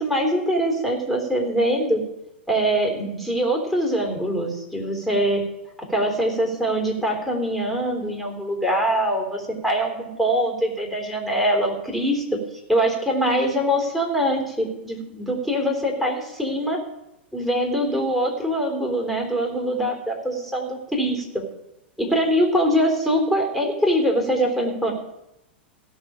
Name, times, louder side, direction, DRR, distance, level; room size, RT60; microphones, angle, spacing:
voice 1, 0.0-2.0 2.5-5.4 5.9-12.2 12.7-16.8 17.3-21.4 22.0-24.9, equal, ahead, 0 dB, 3.9 m, -23 dB
17.0 x 6.6 x 5.1 m, 0.87 s
hypercardioid pair, 105°, 6 cm